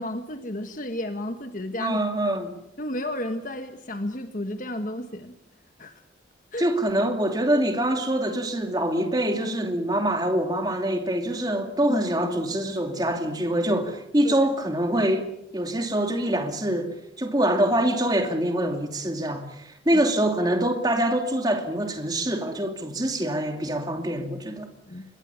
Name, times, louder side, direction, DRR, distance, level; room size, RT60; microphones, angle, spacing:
voice 1, 0.0-2.0 2.8-5.3 5.8-6.0 6.5-6.7 11.9-12.0 14.2-14.5 19.9-20.0 24.9-25.0, left 1 dB, 45° left, 1.5 m, -32 dB
voice 2, 1.8-2.6 6.6-15.3 15.5-24.7, right 1 dB, 20° right, 2.5 m, -25 dB
26.0 x 22.5 x 7.1 m
head